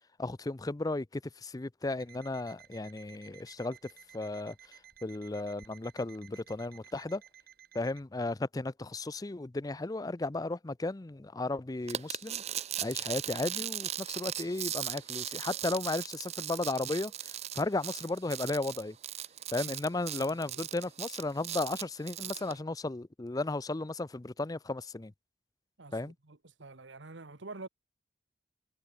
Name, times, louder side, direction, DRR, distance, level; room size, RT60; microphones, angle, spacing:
voice 1, 0.2-3.8 4.1-7.2 7.7-12.4 12.8-19.0 19.5-25.1 25.9-26.1, left 2 dB, 20° left, 0.5 m, -35 dB
Alarm, 2.0-8.1, right 9 dB, 55° right, 5.7 m, -56 dB
sound 1, 11.9-22.5, right 11 dB, 35° right, 0.6 m, -38 dB
voice 2, 20.2-20.6 25.8-27.7, right 3 dB, 75° right, 1.4 m, -48 dB
head